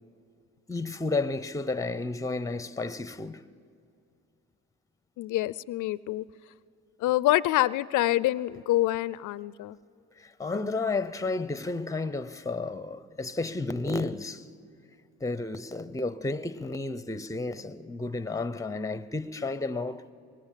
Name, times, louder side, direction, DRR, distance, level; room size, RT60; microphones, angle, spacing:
voice 1, 0.7-3.4 10.2-14.4 15.2-20.1, left 3 dB, 10° left, 0.7 m, -32 dB
voice 2, 5.2-6.2 7.0-9.8, left 16 dB, 80° left, 0.5 m, -26 dB
24.5 x 19.5 x 7.5 m
cardioid pair, 90°, 30 cm